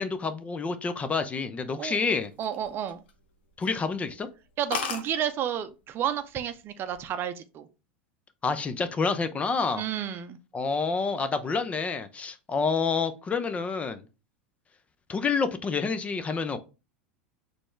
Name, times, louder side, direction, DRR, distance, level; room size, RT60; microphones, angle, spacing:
voice 1, 0.0-2.3 3.6-4.3 8.4-9.8 10.5-14.0 15.1-16.6, left 4 dB, 25° left, 0.6 m, -28 dB
sound 1, 2.2-3.2 3.6-3.8 4.2-4.3 4.5-4.6 4.7-5.1 6.0-6.3 6.7-7.1, left 5 dB, 75° left, 1.0 m, -34 dB
voice 2, 2.4-3.0 4.6-7.7 9.8-10.4, right 9 dB, 40° right, 0.6 m, -31 dB
4.1 x 3.3 x 3.2 m
hypercardioid pair, 95°, 6 cm